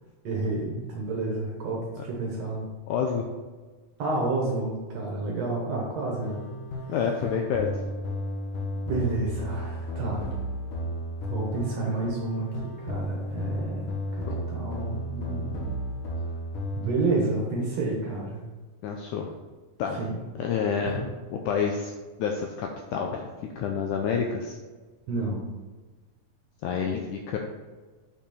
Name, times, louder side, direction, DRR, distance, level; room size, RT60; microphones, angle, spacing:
voice 1, 0.2-2.7 4.0-6.5 8.9-10.3 11.3-15.8 16.7-18.4 20.0-20.2 21.0-21.1 25.1-25.4, right 3 dB, 60° right, -2 dB, 1.9 m, -30 dB
voice 2, 2.9-3.3 6.9-7.7 14.3-14.5 18.8-19.3 19.8-20.0 20.4-21.0 21.3-21.9 22.2-24.6 26.6-27.4, left 6 dB, 85° left, 2 dB, 1.8 m, -28 dB
sound 1, 6.2-16.9, equal, 70° left, 2.5 m, -33 dB
6.8 x 5.8 x 4.3 m, 1.3 s
omnidirectional pair, 4.1 m